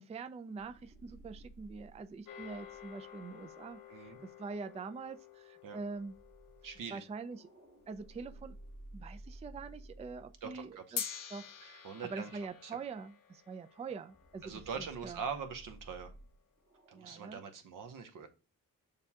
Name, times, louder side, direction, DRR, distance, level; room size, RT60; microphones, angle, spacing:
voice 1, 0.0-6.1 6.9-7.5 7.9-8.6 8.9-11.0 11.3-15.2 16.9-17.4, right 4 dB, 20° right, 0.3 m, -44 dB
sound 1, 0.6-4.8 6.0-12.0 12.4-12.5 14.1-17.5, right 1 dB, 40° right, 1.5 m, -55 dB
sound 2, 2.3-8.7 11.0-15.4, left 8 dB, 70° left, 0.7 m, -48 dB
voice 2, 3.9-4.2 5.6-5.8 6.6-7.0 10.4-11.0 11.8-12.3 12.6-12.8 14.4-16.1 16.9-18.3, right 6 dB, 70° right, 0.9 m, -43 dB
6.6 x 2.3 x 2.8 m
cardioid pair, 65°, 33 cm